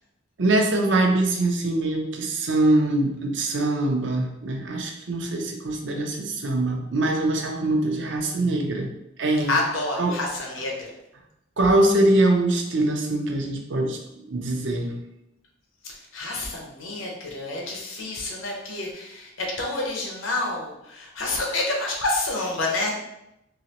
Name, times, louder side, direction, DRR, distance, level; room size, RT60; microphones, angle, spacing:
voice 1, 0.4-8.9 9.2-9.6 10.0-10.1 11.6-14.9, right 2 dB, 65° right, 2 dB, 0.6 m, -23 dB
voice 2, 9.5-10.9 15.8-22.9, left 2 dB, 85° left, -1 dB, 1.0 m, -28 dB
3.9 x 2.9 x 3.0 m, 0.86 s
head